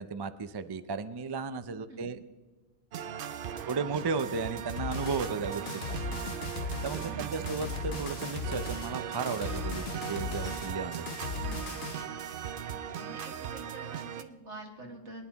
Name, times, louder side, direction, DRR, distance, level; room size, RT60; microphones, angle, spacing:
voice 1, 0.0-2.2 3.7-6.0 6.8-11.3, right 4 dB, 35° right, 11 dB, 0.4 m, -34 dB
sound 1, 2.9-14.2, right 9 dB, 55° right, 0.7 m, -38 dB
sound 2, 4.8-12.1, left 5 dB, 65° left, 1.2 m, -38 dB
voice 2, 5.7-6.0 7.0-7.5 11.4-11.6 12.6-15.3, right 2 dB, 75° right, 1 dB, 2.2 m, -47 dB
22.5 x 10.5 x 3.0 m, 1.3 s
omnidirectional pair, 1.2 m